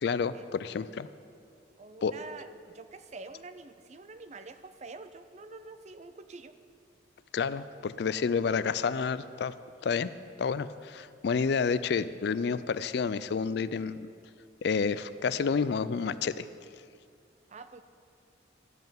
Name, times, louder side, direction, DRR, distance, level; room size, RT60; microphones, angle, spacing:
voice 1, 0.0-1.1 2.0-2.1 7.3-9.5 9.8-10.1 10.4-14.1 14.6-16.5, left 5 dB, 60° left, 15 dB, 0.4 m, -29 dB
voice 2, 1.8-6.5 17.5-17.8, right 3 dB, 35° right, 11 dB, 0.5 m, -46 dB
12.5 x 5.4 x 9.1 m, 2.3 s
head